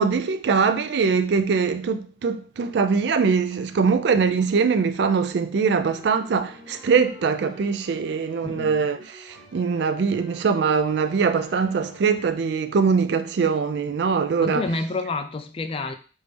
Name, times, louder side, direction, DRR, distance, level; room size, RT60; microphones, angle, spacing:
voice 1, 0.0-14.6, right 5 dB, 60° right, 0.3 m, -22 dB
sound 1, 5.8-12.3, right 1 dB, ahead, 1.7 m, -47 dB
voice 2, 8.4-8.9 14.4-15.9, left 3 dB, 30° left, 0.3 m, -29 dB
3.3 x 2.6 x 3.3 m
head